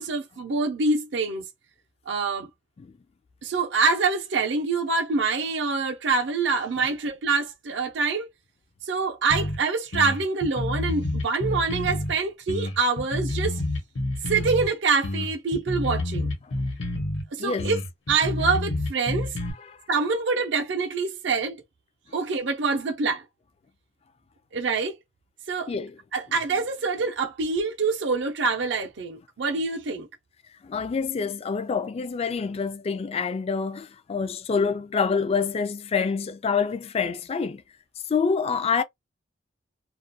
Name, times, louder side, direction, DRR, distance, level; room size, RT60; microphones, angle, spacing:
voice 1, 0.0-1.4 2.1-2.5 3.4-8.3 8.9-13.6 14.3-16.3 17.3-17.8 18.1-19.3 19.9-21.6 22.1-23.2 24.5-24.9 25.5-25.7 26.1-30.1, right 4 dB, 70° right, 0.6 m, -25 dB
sound 1, 9.3-9.6 9.9-12.1 12.5-14.7 15.0-17.2 17.6-19.5, left 1 dB, 75° left, 1.0 m, -28 dB
voice 2, 30.7-37.6 38.1-38.8, left 5 dB, 30° left, 0.3 m, -26 dB
2.4 x 2.2 x 2.6 m
head